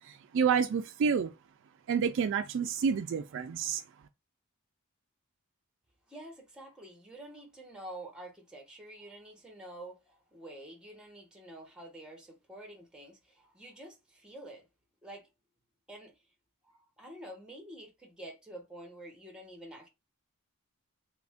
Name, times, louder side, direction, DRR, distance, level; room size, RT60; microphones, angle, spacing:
voice 1, 0.3-1.3 1.9-3.8, right 6 dB, 55° right, 0.3 m, -28 dB
voice 2, 6.1-14.7 15.0-15.3 15.9-16.1 16.6-19.9, right 1 dB, 5° right, 0.9 m, -48 dB
3.1 x 2.5 x 3.4 m
head